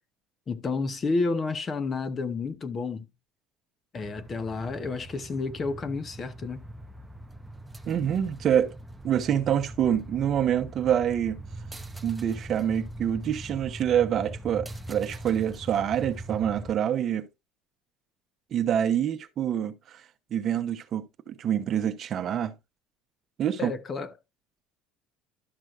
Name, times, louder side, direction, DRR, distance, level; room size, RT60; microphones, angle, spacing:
voice 1, 0.5-3.1 3.9-6.6 23.6-24.1, left 3 dB, 25° left, 0.8 m, -30 dB
sound 1, 4.0-16.7, right 1 dB, 5° right, 0.7 m, -41 dB
voice 2, 7.9-8.7 9.0-11.4 12.0-17.3 18.5-20.0 20.3-22.5 23.4-23.7, right 9 dB, 40° right, 0.8 m, -26 dB
12.0 x 6.2 x 2.4 m
cardioid pair, 140°, 0 cm